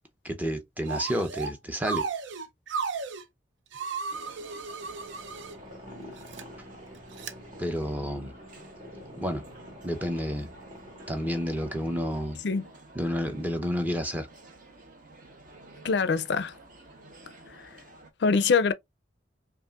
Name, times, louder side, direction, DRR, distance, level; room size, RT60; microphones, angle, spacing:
voice 1, 0.2-2.1 7.6-8.3 9.2-9.4 9.8-10.5 11.1-12.4 12.9-14.3, equal, 10° right, 0.6 m, -30 dB
sound 1, 0.9-1.5 1.8-3.2 3.7-5.5 6.2-6.4 7.2-7.3, right 5 dB, 70° right, 0.6 m, -34 dB
sound 2, 4.1-18.1, right 2 dB, 45° right, 0.9 m, -52 dB
sound 3, 4.5-12.3, equal, 25° right, 1.4 m, -47 dB
voice 2, 15.8-16.5 17.6-17.7 18.2-18.7, left 5 dB, 60° left, 0.4 m, -24 dB
5.3 x 2.5 x 2.4 m
head